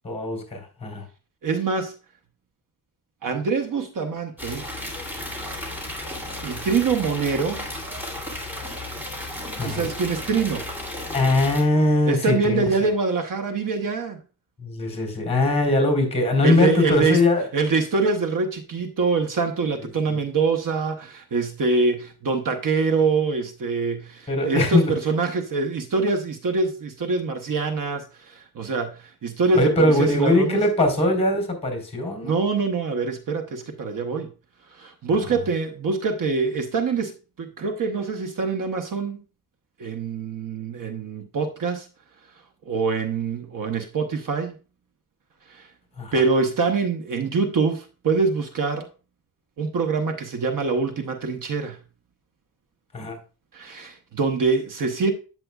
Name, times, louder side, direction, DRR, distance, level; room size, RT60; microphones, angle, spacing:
voice 1, 0.0-1.0 9.6-9.9 11.1-12.9 14.6-17.5 19.8-20.2 24.3-24.9 29.5-32.4 35.1-35.3 46.0-46.2 52.9-53.2, left 2 dB, 15° left, 4.1 m, -21 dB
voice 2, 1.4-1.9 3.2-4.6 6.4-7.6 9.6-10.6 12.1-14.2 16.4-17.2 17.5-30.6 32.2-34.3 34.8-37.1 37.4-39.2 39.8-41.9 42.7-44.5 45.5-45.7 46.1-48.9 49.6-51.8 53.5-55.1, right 4 dB, 55° right, 1.0 m, -24 dB
sound 1, 4.4-11.6, left 1 dB, 5° right, 2.8 m, -34 dB
9.1 x 7.6 x 2.4 m
cardioid pair, 100°, 37 cm